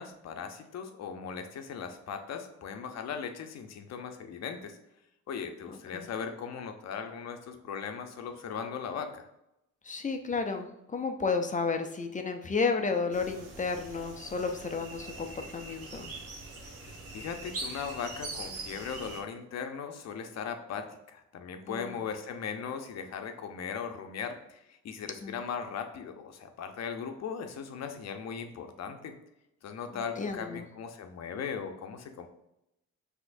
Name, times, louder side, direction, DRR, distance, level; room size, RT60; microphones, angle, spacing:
voice 1, 0.0-4.8 5.3-9.3 17.1-29.2 29.6-32.3, left 6 dB, 60° left, 6 dB, 0.7 m, -38 dB
voice 2, 9.8-16.2 21.7-22.0 25.2-25.3 29.9-30.7, left 4 dB, 25° left, 5 dB, 0.6 m, -32 dB
sound 1, 13.1-19.2, right 2 dB, 50° right, 1.1 m, -43 dB
6.0 x 2.9 x 2.6 m, 0.84 s
cardioid pair, 90°, 30 cm